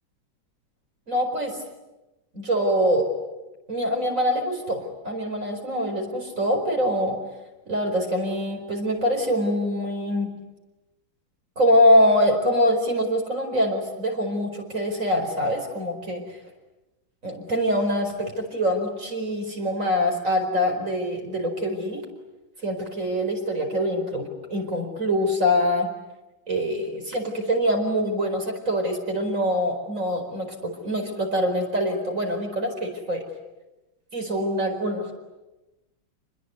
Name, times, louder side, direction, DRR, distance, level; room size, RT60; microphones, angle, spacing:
voice 1, 1.1-1.6 2.3-3.1 3.7-7.2 7.7-10.3 11.6-16.2 17.2-22.0 22.6-25.9 26.5-33.2 34.1-35.1, equal, 40° right, 3 dB, 5.1 m, -24 dB
28.0 x 21.0 x 9.6 m, 1.0 s
omnidirectional pair, 2.2 m